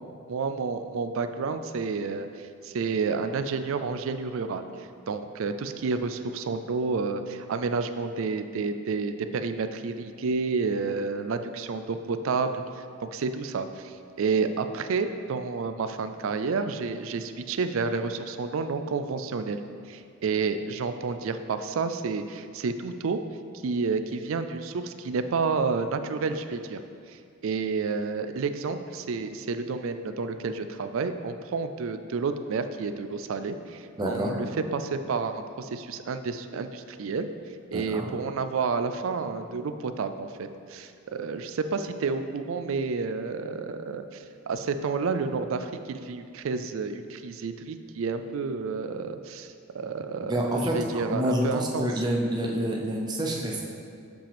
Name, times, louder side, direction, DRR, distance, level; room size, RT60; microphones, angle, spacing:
voice 1, 0.3-12.6 13.1-19.6 19.9-23.2 23.6-26.8 27.1-34.5 34.7-37.3 37.7-51.9, right 4 dB, 65° right, 9 dB, 0.4 m, -30 dB
voice 2, 34.0-34.4 37.7-38.0 50.2-53.6, right 1 dB, 20° right, -1 dB, 0.6 m, -28 dB
7.6 x 5.7 x 3.4 m, 2.4 s
head